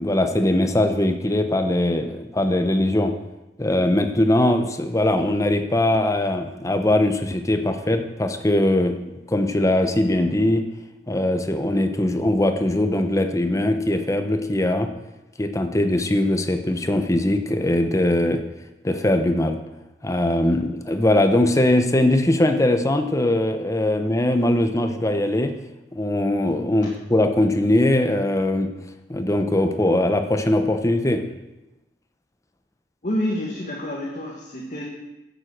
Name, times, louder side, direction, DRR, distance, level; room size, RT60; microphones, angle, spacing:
voice 1, 0.0-3.1 3.6-9.0 9.3-10.6 11.1-14.9 15.4-18.4 18.8-19.6 20.0-25.5 25.9-28.7 29.1-31.2, left 1 dB, 20° left, 7 dB, 0.9 m, -21 dB
voice 2, 33.0-34.8, left 1 dB, 45° left, -3 dB, 1.8 m, -28 dB
10.5 x 8.0 x 6.6 m, 0.99 s
head